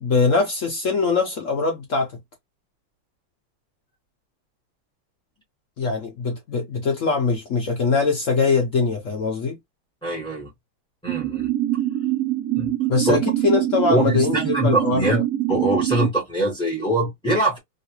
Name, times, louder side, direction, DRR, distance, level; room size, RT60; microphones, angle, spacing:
voice 1, 0.0-2.1 5.8-9.6 12.9-15.2, left 4 dB, 75° left, 0.7 m, -22 dB
voice 2, 10.0-10.5 11.0-11.5 12.6-12.7 13.1-13.2 13.9-15.2 15.5-17.6, right 1 dB, 5° left, 0.5 m, -23 dB
sound 1, 11.1-16.1, right 14 dB, 75° right, 0.8 m, -24 dB
3.2 x 2.5 x 2.9 m
omnidirectional pair, 2.3 m